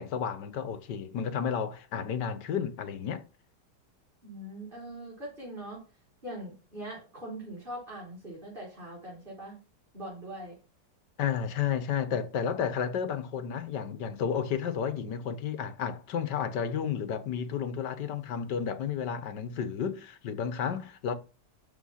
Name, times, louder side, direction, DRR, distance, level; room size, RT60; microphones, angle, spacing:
voice 1, 0.0-3.2 11.2-21.1, left 7 dB, 75° left, 1.7 m, -32 dB
voice 2, 4.2-5.8 6.2-9.6 9.9-10.6, right 1 dB, 30° right, 4.6 m, -42 dB
13.0 x 4.5 x 5.7 m
omnidirectional pair, 1.9 m